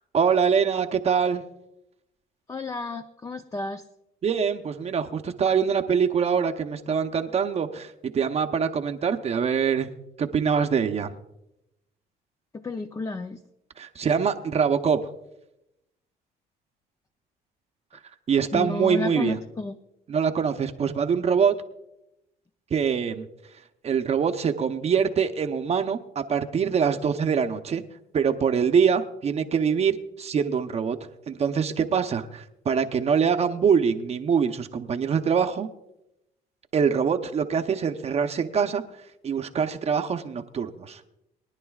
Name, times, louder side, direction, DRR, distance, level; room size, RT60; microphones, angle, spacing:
voice 1, 0.1-1.4 4.2-9.9 10.2-11.2 13.8-15.1 18.3-19.4 20.1-21.5 22.7-23.2 23.8-27.8 28.1-31.0 31.3-35.7 36.7-38.8 39.2-41.0, right 6 dB, 40° right, 6 dB, 0.8 m, -24 dB
voice 2, 2.5-3.8 12.5-13.4 18.5-19.8, left 3 dB, 20° left, 8 dB, 0.5 m, -32 dB
23.0 x 10.5 x 2.4 m, 0.87 s
cardioid pair, 110°, 17 cm